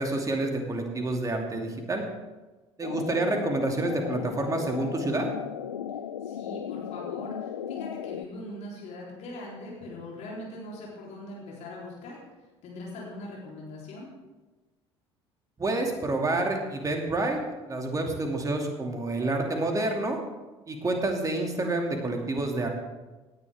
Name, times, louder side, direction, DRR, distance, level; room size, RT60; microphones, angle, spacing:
voice 1, 0.0-2.0 2.8-5.3 15.6-17.4 17.7-20.2 20.7-22.7, right 2 dB, 25° right, 2 dB, 2.6 m, -28 dB
sound 1, 2.8-8.2, left 9 dB, 80° left, 0.5 m, -36 dB
voice 2, 2.9-3.3 6.2-12.2 12.6-14.1, left 1 dB, 50° left, -4 dB, 3.7 m, -41 dB
18.0 x 10.0 x 3.6 m, 1.2 s
figure-of-eight pair, 60°, 15 cm